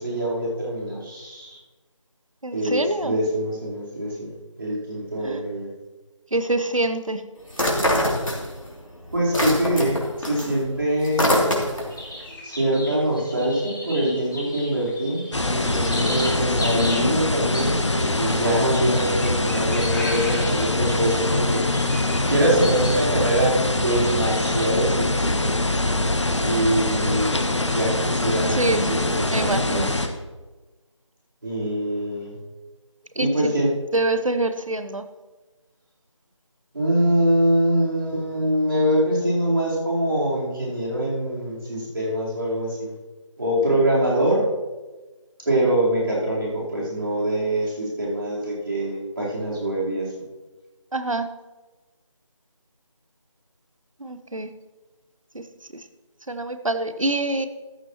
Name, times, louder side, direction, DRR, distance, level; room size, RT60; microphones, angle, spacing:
voice 1, 0.0-1.6 2.5-4.3 4.6-5.7 9.1-11.4 12.4-25.6 26.4-29.8 31.4-32.4 33.2-33.7 36.7-42.9 43.4-44.5 45.5-50.1, right 1 dB, 45° right, -6 dB, 4.1 m, -24 dB
voice 2, 2.4-3.1 5.2-5.4 6.3-7.2 28.6-29.9 33.2-33.5 33.9-35.0 50.9-51.3 54.0-54.5 55.3-55.4 56.3-57.5, right 2 dB, 80° right, 10 dB, 1.1 m, -25 dB
sound 1, 7.5-8.8 9.1-12.0, left 1 dB, 80° left, 3.0 m, -23 dB
sound 2, 11.9-23.1 23.5-24.7, left 1 dB, 40° left, 2.1 m, -36 dB
sound 3, 15.3-30.1, left 2 dB, 60° left, 1.2 m, -23 dB
14.0 x 11.0 x 3.1 m, 1.2 s
figure-of-eight pair, 165°, 17 cm